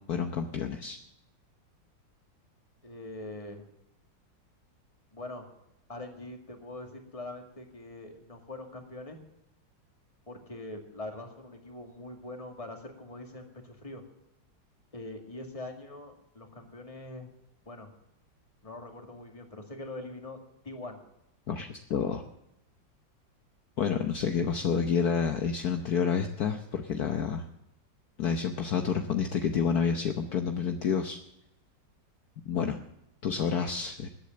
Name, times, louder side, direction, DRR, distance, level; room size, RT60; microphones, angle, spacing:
voice 1, 0.1-1.0 21.5-22.2 23.8-27.5 28.2-31.2 32.4-32.8 33.2-34.1, left 6 dB, 60° left, 6 dB, 1.4 m, -29 dB
voice 2, 2.8-3.7 5.1-5.5 5.9-9.2 10.3-14.0 14.9-17.3 17.7-17.9 18.6-20.4 20.6-21.0, left 2 dB, 20° left, 4 dB, 2.2 m, -43 dB
20.0 x 8.4 x 7.7 m, 0.83 s
omnidirectional pair, 2.0 m